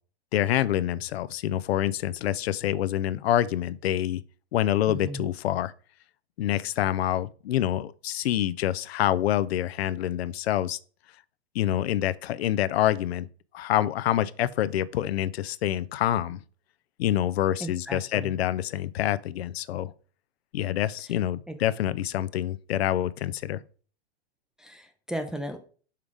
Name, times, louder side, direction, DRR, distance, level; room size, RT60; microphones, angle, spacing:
voice 1, 0.3-4.2 4.5-5.7 6.4-10.8 11.5-13.3 13.5-16.4 17.0-19.9 20.5-23.6, left 12 dB, 70° left, 0.5 m, -26 dB
voice 2, 4.9-5.3 17.6-18.3 21.5-21.6 24.6-25.6, right 1 dB, ahead, 0.4 m, -35 dB
5.7 x 3.6 x 4.9 m
hypercardioid pair, 115°, 32 cm